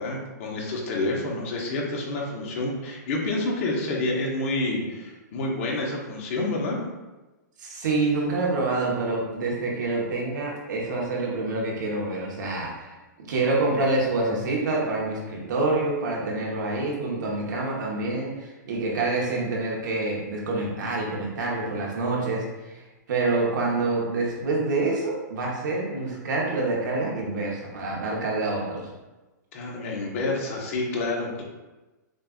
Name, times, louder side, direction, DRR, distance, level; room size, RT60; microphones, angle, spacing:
voice 1, 0.0-6.8 29.5-31.4, left 2 dB, 45° left, -2 dB, 1.1 m, -28 dB
voice 2, 7.6-12.9 13.3-22.8 23.1-28.9, right 2 dB, 70° right, -2 dB, 1.2 m, -27 dB
6.4 x 2.5 x 2.4 m, 1.1 s
hypercardioid pair, 155°, 10 cm